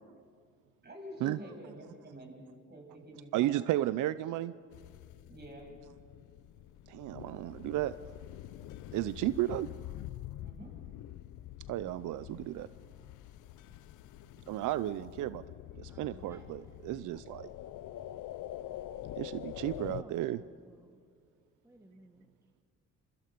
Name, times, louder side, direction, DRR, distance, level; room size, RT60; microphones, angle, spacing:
voice 1, 0.8-2.4 2.7-3.7 5.3-5.7 10.4-10.7, right 1 dB, 35° right, 0 dB, 7.4 m, -48 dB
voice 2, 3.3-4.5 6.9-8.0 8.9-9.7 11.7-12.7 14.5-15.4 15.8-17.5 19.2-20.4, right 14 dB, 85° right, 15 dB, 0.5 m, -33 dB
sound 1, 4.7-20.0, left 13 dB, 80° left, 0.7 m, -46 dB
voice 3, 15.9-16.5 19.9-21.0 21.6-22.3, right 1 dB, 10° right, 3 dB, 1.7 m, -57 dB
27.0 x 24.0 x 5.2 m, 2.2 s
cardioid pair, 90°, 30 cm